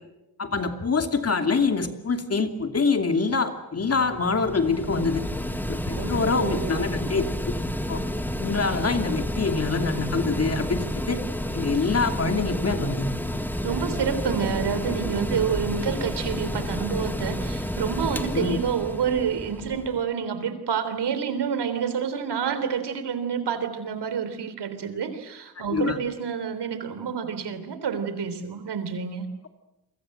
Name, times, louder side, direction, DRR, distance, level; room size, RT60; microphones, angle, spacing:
voice 1, 0.4-5.2 5.7-7.5 7.9-8.0 8.4-11.2 11.5-13.1 18.3-18.6 25.7-26.0, left 4 dB, 35° left, 6 dB, 2.7 m, -25 dB
Mechanical fan, 3.8-20.1, equal, 5° left, 1.9 m, -30 dB
voice 2, 5.9-6.8 13.6-29.3, right 7 dB, 85° right, 10 dB, 3.6 m, -28 dB
29.5 x 24.0 x 7.8 m, 0.96 s
wide cardioid pair, 145°, 40 cm